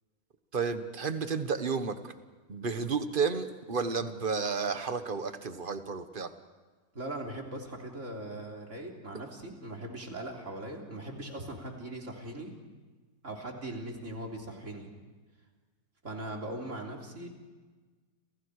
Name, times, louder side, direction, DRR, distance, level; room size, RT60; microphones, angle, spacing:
voice 1, 0.5-2.1 2.5-6.3, right 5 dB, 35° right, 9 dB, 1.4 m, -32 dB
voice 2, 6.9-12.5 13.2-14.9 16.0-17.3, right 1 dB, 50° right, 0 dB, 3.9 m, -40 dB
30.0 x 27.5 x 4.9 m, 1.3 s
omnidirectional pair, 1.6 m